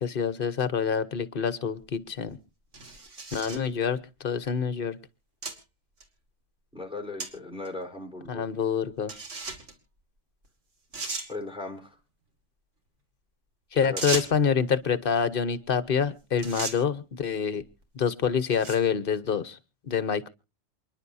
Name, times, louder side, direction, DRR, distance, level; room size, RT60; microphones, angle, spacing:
voice 1, 0.0-2.4 3.3-5.0 8.3-9.1 13.7-17.6 17.9-19.6 19.8-20.3, left 6 dB, 50° left, 14 dB, 1.1 m, -27 dB
sound 1, 1.8-1.9 2.7-3.7 4.5-4.6 5.4-5.6 6.0-6.1 7.2-7.3 7.7-7.8 9.1-9.7 10.4-10.5 10.9-11.3 14.0-14.5 15.9-16.1 16.4-16.8 17.6-17.8 18.4-18.9, right 3 dB, 85° right, 2.5 m, -35 dB
voice 2, 6.7-8.4 11.3-11.9 13.8-14.1, left 2 dB, 5° right, 4 dB, 4.1 m, -37 dB
28.0 x 10.5 x 2.7 m, 0.32 s
omnidirectional pair, 1.2 m